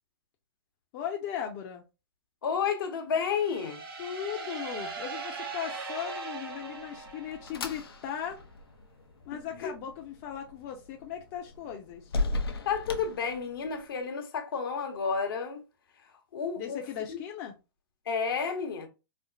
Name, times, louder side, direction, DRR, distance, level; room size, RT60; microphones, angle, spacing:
voice 1, 0.9-1.8 4.0-8.4 9.2-12.1 16.6-17.5, left 9 dB, 45° left, 0.7 m, -38 dB
voice 2, 2.4-3.8 9.3-9.7 12.6-15.6 16.3-16.8 17.1-17.2 18.1-18.9, left 6 dB, 70° left, 1.0 m, -31 dB
sound 1, 3.2-7.9, right 4 dB, 75° right, 1.1 m, -40 dB
sound 2, 6.5-13.9, left 2 dB, 85° left, 0.7 m, -38 dB
4.3 x 2.1 x 2.4 m
hypercardioid pair, 120°, 12 cm